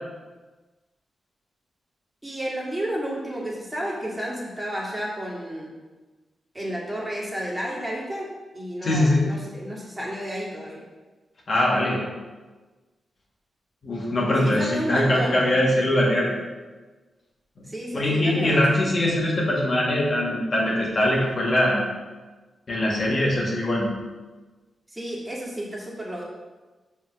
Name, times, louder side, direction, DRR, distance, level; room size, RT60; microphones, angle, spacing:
voice 1, 2.2-5.7 6.5-8.3 8.5-10.8 14.4-15.6 17.6-18.8 24.9-26.2, equal, 15° right, -4 dB, 2.2 m, -31 dB
voice 2, 8.8-9.2 11.5-12.0 13.8-16.3 17.6-17.7 17.9-21.8 22.7-23.9, left 1 dB, 50° left, -5 dB, 2.2 m, -22 dB
5.6 x 4.6 x 6.2 m, 1.3 s
cardioid pair, 65°, 0 cm